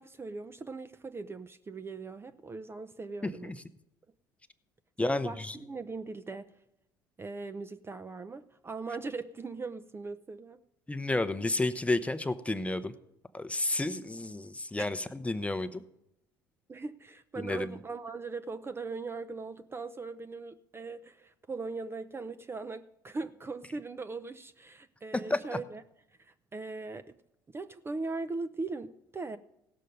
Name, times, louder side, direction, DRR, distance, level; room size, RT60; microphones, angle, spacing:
voice 1, 0.0-3.5 5.0-6.5 7.2-10.6 14.8-15.0 16.7-25.8 26.2-27.2 27.5-29.4, right 3 dB, 20° right, 11 dB, 0.6 m, -40 dB
voice 2, 3.2-3.5 5.0-5.5 10.9-12.9 13.3-15.8 17.4-17.7 25.3-25.6, left 2 dB, 10° left, 13 dB, 0.7 m, -31 dB
17.0 x 6.6 x 5.3 m, 0.83 s
figure-of-eight pair, 60°, 11 cm